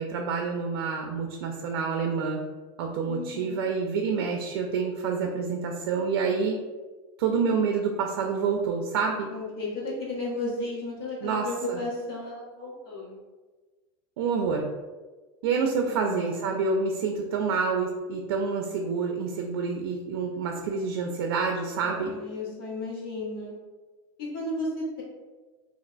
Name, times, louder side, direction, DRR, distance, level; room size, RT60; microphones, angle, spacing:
voice 1, 0.0-2.4 2.8-6.6 7.2-9.3 11.2-11.8 14.2-14.7 15.4-22.1, right 5 dB, 85° right, 2 dB, 0.4 m, -28 dB
voice 2, 3.1-3.6 9.3-13.2 15.7-16.6 21.8-23.5 24.2-25.0, left 2 dB, 90° left, -5 dB, 1.2 m, -34 dB
2.6 x 2.1 x 3.8 m, 1.3 s
supercardioid pair, 145°, 12 cm